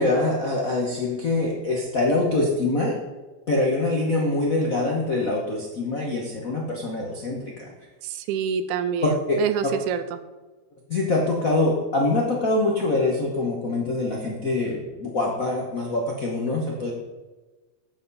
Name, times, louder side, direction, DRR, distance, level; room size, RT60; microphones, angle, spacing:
voice 1, 0.0-2.9 3.5-7.4 9.0-9.4 10.9-16.9, left 2 dB, 60° left, -2 dB, 0.9 m, -24 dB
voice 2, 8.0-10.2, right 7 dB, 80° right, 11 dB, 2.0 m, -27 dB
11.0 x 7.9 x 4.1 m, 1.2 s
omnidirectional pair, 3.4 m